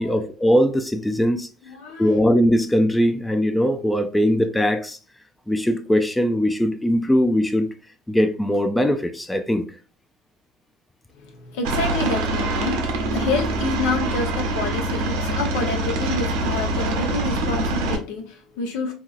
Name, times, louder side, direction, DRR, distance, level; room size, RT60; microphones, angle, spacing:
voice 1, 0.0-1.5 2.0-5.0 5.5-7.7 8.1-9.7, equal, 10° left, 0.3 m, -20 dB
voice 2, 1.6-2.2 11.1-18.9, left 3 dB, 80° left, 0.8 m, -28 dB
Aircraft, 11.6-18.0, right 2 dB, 80° right, 0.7 m, -24 dB
2.8 x 2.6 x 2.4 m
supercardioid pair, 90°, 0 cm